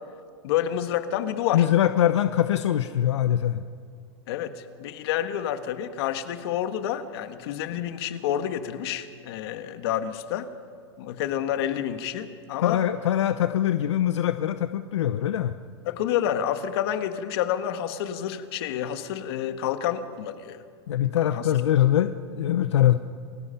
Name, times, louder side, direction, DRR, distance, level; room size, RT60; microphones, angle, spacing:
voice 1, 0.4-1.7 4.3-10.5 11.0-12.8 15.8-20.6 21.3-21.5, left 10 dB, 65° left, 9 dB, 1.5 m, -29 dB
voice 2, 1.5-3.6 12.6-15.5 20.9-23.0, left 11 dB, 90° left, 10 dB, 0.7 m, -23 dB
28.0 x 16.5 x 5.8 m, 2.1 s
hypercardioid pair, 130°, 14 cm